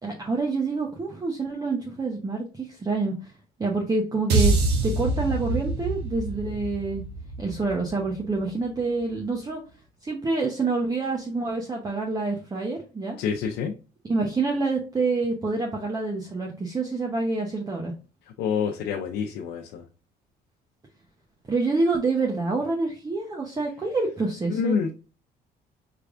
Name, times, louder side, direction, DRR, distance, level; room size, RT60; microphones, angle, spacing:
voice 1, 0.0-3.1 3.6-4.5 4.8-7.0 7.4-9.6 10.0-13.2 14.0-17.9 21.5-24.9, right 3 dB, 20° right, 0 dB, 0.9 m, -27 dB
sound 1, 4.3-8.6, right 3 dB, 75° right, 1.1 m, -26 dB
voice 2, 13.2-13.7 18.4-19.8 24.5-24.9, left 6 dB, 80° left, 1 dB, 0.7 m, -27 dB
4.9 x 3.3 x 2.5 m, 0.33 s
cardioid pair, 110°, 17 cm